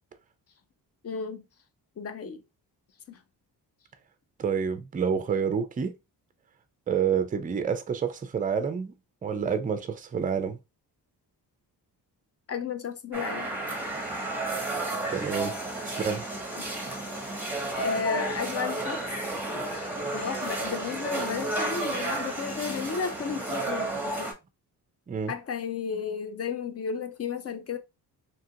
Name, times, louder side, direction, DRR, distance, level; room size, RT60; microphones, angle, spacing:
voice 1, 1.0-1.4 2.0-2.4 3.1-3.2 12.5-13.5 16.6-16.7 17.7-19.1 20.1-24.3 25.3-27.8, left 6 dB, 40° left, 0.4 m, -33 dB
voice 2, 4.4-5.9 6.9-8.9 9.2-10.6 15.1-15.5 15.8-16.2 25.1-25.3, right 6 dB, 20° right, 0.4 m, -28 dB
sound 1, 13.1-24.3, right 2 dB, 5° right, 0.9 m, -32 dB
2.9 x 2.4 x 2.7 m
cardioid pair, 105°, 40 cm